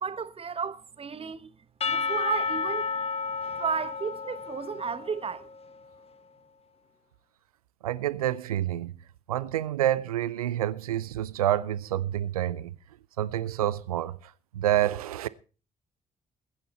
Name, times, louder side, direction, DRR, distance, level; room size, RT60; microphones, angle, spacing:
voice 1, 0.0-1.5 1.9-2.9 3.6-5.5, right 5 dB, 30° right, 1.3 m, -33 dB
Percussion / Church bell, 1.8-5.7, left 4 dB, 30° left, 1.2 m, -31 dB
voice 2, 7.8-8.9 9.3-12.7 13.2-15.3, right 12 dB, 80° right, 0.6 m, -28 dB
20.5 x 9.1 x 4.2 m
figure-of-eight pair, 45°, 19 cm